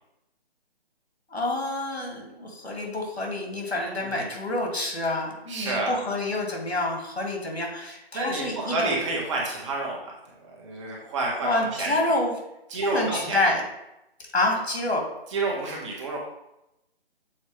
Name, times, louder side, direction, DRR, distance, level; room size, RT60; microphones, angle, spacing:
voice 1, 1.3-9.0 11.4-12.3 12.8-13.6 14.3-15.0, left 2 dB, 85° left, 0 dB, 2.2 m, -27 dB
voice 2, 5.5-5.9 8.1-10.1 10.5-12.1 12.7-13.5 15.3-16.2, right 3 dB, 30° right, -2 dB, 1.4 m, -29 dB
7.2 x 4.6 x 3.3 m, 0.87 s
figure-of-eight pair, 150°, 31 cm